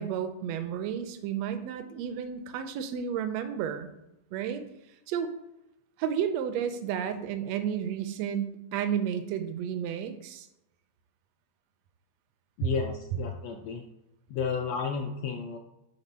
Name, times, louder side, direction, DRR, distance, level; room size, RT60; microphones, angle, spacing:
voice 1, 0.0-3.9 4.3-4.6 5.1-5.3 6.0-10.5, right 8 dB, 80° right, 8 dB, 1.5 m, -32 dB
voice 2, 12.6-13.8 14.3-15.6, left 5 dB, 80° left, 3 dB, 1.5 m, -32 dB
5.0 x 3.7 x 5.4 m, 0.89 s
omnidirectional pair, 3.4 m